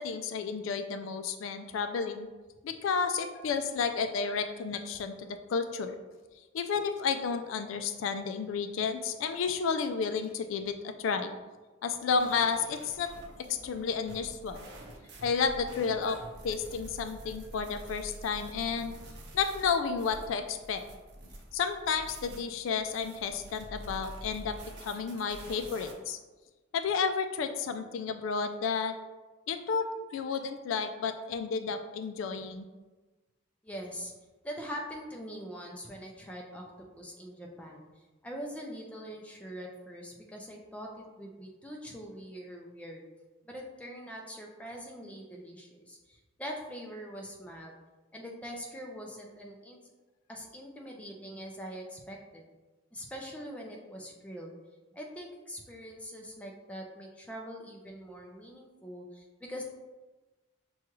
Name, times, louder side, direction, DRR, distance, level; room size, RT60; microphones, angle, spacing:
voice 1, 0.0-2.3 2.6-6.0 6.5-11.3 11.8-13.1 13.5-14.6 15.2-16.2 16.4-18.9 19.3-20.8 21.5-24.6 24.8-26.2 26.7-28.9 29.5-29.9 30.1-32.7, left 5 dB, 75° left, 8 dB, 0.3 m, -31 dB
sound 1, 12.2-25.9, equal, 55° right, 0.7 m, -47 dB
voice 2, 33.6-34.1 34.4-36.6 37.0-37.9 38.2-43.0 43.4-47.7 48.1-49.8 50.3-52.5 52.9-54.5 54.9-59.6, equal, 5° left, -1 dB, 0.5 m, -43 dB
6.0 x 2.3 x 3.0 m, 1.2 s
head